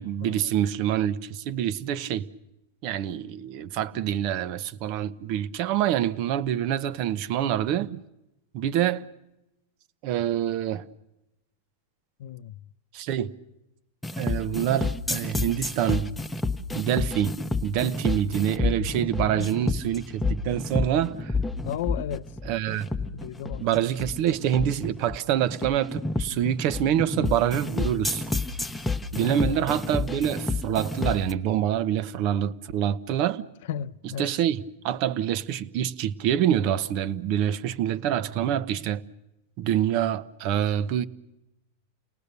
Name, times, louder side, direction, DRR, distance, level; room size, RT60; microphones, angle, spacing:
voice 1, 0.0-2.3 2.8-8.0 8.5-9.0 10.0-10.8 12.9-13.3 14.2-16.1 16.7-21.3 22.4-22.9 23.6-28.2 29.1-33.4 34.2-39.0 39.6-41.1, right 10 dB, 50° right, 1.0 m, -26 dB
voice 2, 12.2-12.6 19.2-19.5 21.6-22.3 23.0-23.7 29.1-29.6 33.7-34.3, left 11 dB, 70° left, 0.8 m, -35 dB
sound 1, 14.0-31.3, left 3 dB, 5° left, 1.0 m, -29 dB
29.5 x 19.0 x 6.8 m
supercardioid pair, 135°, 0 cm